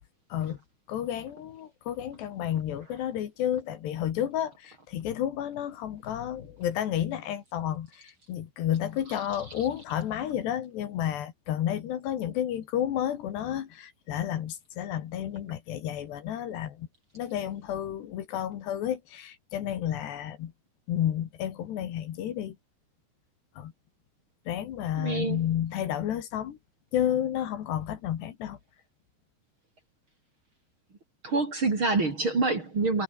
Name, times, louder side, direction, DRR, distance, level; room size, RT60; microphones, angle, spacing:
voice 1, 0.9-16.9 17.2-20.5 20.9-22.6 23.6-23.7 24.5-26.6 26.9-28.6, left 10 dB, 70° left, 3.9 m, -31 dB
voice 2, 25.0-25.5 31.2-33.0, right 3 dB, 30° right, 3.7 m, -26 dB
omnidirectional pair, 5.3 m